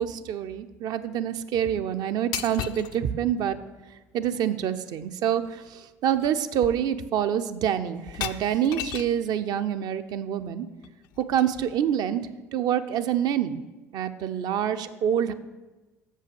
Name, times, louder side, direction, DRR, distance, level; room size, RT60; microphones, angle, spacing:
voice 1, 0.0-3.6 4.1-10.7 11.3-12.2 12.5-13.6 13.9-15.3, right 9 dB, 55° right, 10 dB, 0.5 m, -26 dB
sound 1, 2.3-3.0 5.0-5.1 5.4-5.7 6.1-6.3 6.6-7.2 8.0-9.2 10.8-11.8, left 11 dB, 60° left, 0.4 m, -36 dB
6.9 x 5.5 x 6.9 m, 1.2 s
hypercardioid pair, 65°, 8 cm